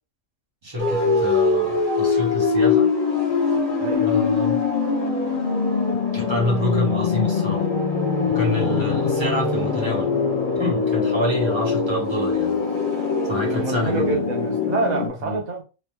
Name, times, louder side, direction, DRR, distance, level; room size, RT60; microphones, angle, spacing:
voice 1, 0.6-2.9 4.0-4.6 6.1-7.7 8.3-10.1 10.5-12.6 13.2-14.2 15.2-15.4, left 1 dB, 20° right, 1.1 m, -27 dB
sound 1, 0.8-15.1, left 4 dB, 30° left, 1.1 m, -22 dB
voice 2, 3.8-4.1 13.5-15.6, right 3 dB, 75° right, 0.4 m, -27 dB
3.1 x 2.2 x 3.2 m
omnidirectional pair, 1.5 m